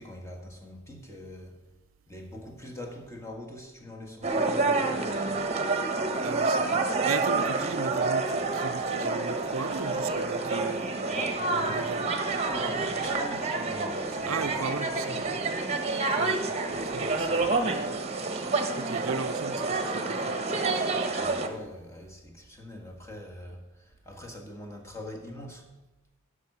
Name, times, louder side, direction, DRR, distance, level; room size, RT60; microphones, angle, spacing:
voice 1, 0.0-1.6 2.1-5.4 11.1-12.1 12.4-15.1 16.7-16.9 17.3-17.5 21.1-25.7, left 1 dB, 15° left, 1.6 m, -43 dB
sound 1, 4.2-21.5, right 3 dB, 30° right, 1.1 m, -28 dB
voice 2, 6.2-10.9 11.6-12.1 14.3-15.4 16.1-18.2 18.8-20.4 20.7-20.8, right 4 dB, 70° right, 0.7 m, -37 dB
15.5 x 6.5 x 6.0 m
head